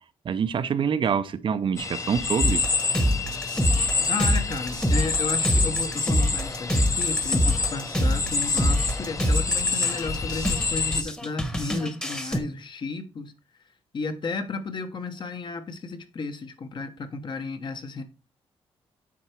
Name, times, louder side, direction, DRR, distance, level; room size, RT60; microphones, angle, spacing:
voice 1, 0.2-2.6, right 7 dB, 55° right, 0.6 m, -25 dB
sound 1, 1.8-11.0, left 4 dB, 30° left, 0.8 m, -27 dB
sound 2, 2.4-12.4, equal, 10° left, 1.1 m, -26 dB
voice 2, 4.1-13.3 13.9-18.0, left 4 dB, 50° left, 1.1 m, -33 dB
8.6 x 4.5 x 4.5 m
cardioid pair, 115°, 10 cm